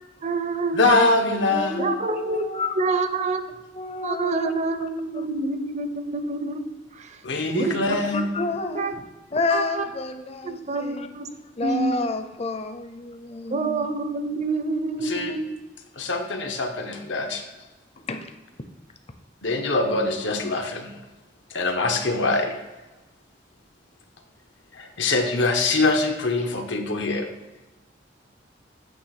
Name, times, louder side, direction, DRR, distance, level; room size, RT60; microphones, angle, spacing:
voice 1, 0.2-0.8 1.8-2.5 2.7-3.4 4.0-7.2 7.5-7.8 8.8-8.9 9.5-9.8 10.4-11.3 11.6-12.1 13.5-15.5, right 3 dB, 40° right, 9 dB, 0.6 m, -27 dB
voice 2, 0.7-1.9 7.2-8.4 15.0-15.4 16.0-17.4 19.4-20.9 21.5-22.6 24.7-27.3, left 2 dB, 85° left, 4 dB, 1.1 m, -23 dB
voice 3, 1.5-2.8 3.7-4.5 4.8-4.9 5.1-5.3 7.9-9.0 9.3-11.1 11.6-13.9 18.0-18.3, left 3 dB, 35° left, 7 dB, 0.7 m, -30 dB
8.7 x 3.4 x 6.6 m, 1.1 s
head